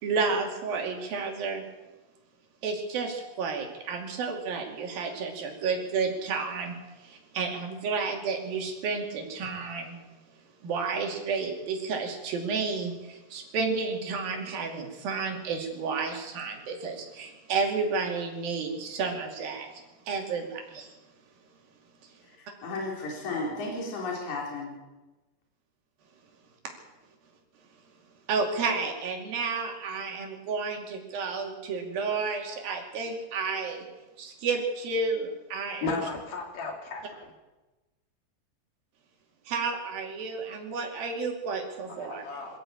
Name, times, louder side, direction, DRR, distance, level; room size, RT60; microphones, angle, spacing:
voice 1, 0.0-1.6 2.6-10.0 10.6-20.9 28.3-33.9 34.2-35.9 39.5-42.2, right 4 dB, 80° right, 2 dB, 4.5 m, -31 dB
voice 2, 22.4-24.7, left 3 dB, 55° left, -1 dB, 5.1 m, -34 dB
voice 3, 35.8-37.3 41.9-42.6, left 3 dB, 85° left, 2 dB, 4.7 m, -34 dB
22.0 x 14.0 x 8.8 m, 1.1 s
omnidirectional pair, 4.0 m